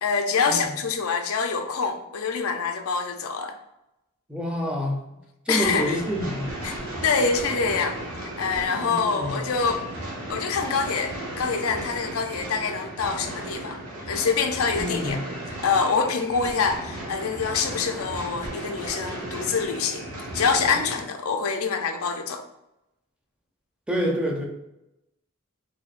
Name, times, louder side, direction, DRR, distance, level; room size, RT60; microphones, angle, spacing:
voice 1, 0.0-3.5 5.5-6.0 6.6-6.7 7.0-8.0 8.4-9.8 10.3-13.8 14.1-15.2 15.5-20.1 20.3-22.4, left 5 dB, 85° left, 5 dB, 0.5 m, -25 dB
voice 2, 4.3-5.1 5.5-6.6 8.8-9.4 14.7-15.3 23.9-24.4, equal, 5° right, 0 dB, 0.5 m, -28 dB
sound 1, 5.6-21.0, right 1 dB, 90° right, 1.1 m, -35 dB
4.4 x 2.6 x 2.4 m, 0.90 s
head